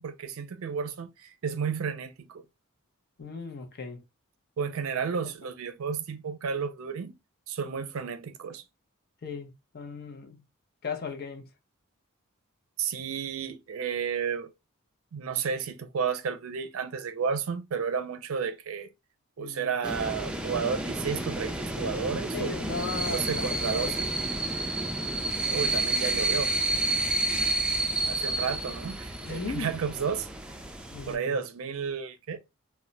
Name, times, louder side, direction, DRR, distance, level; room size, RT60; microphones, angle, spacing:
voice 1, 0.0-2.4 4.6-7.1 7.5-8.6 12.8-14.5 15.1-18.9 19.4-22.6 23.1-24.1 25.5-26.5 28.1-30.3 31.1-32.4, right 6 dB, 70° right, 0.4 m, -32 dB
voice 2, 3.2-4.0 5.2-5.3 9.2-10.5 10.8-11.5 19.4-19.7 22.3-24.0 29.2-29.8 30.9-31.4, left 4 dB, 50° left, 0.6 m, -37 dB
sound 1, 19.8-31.1, right 1 dB, 5° right, 0.3 m, -30 dB
2.1 x 2.1 x 3.8 m
head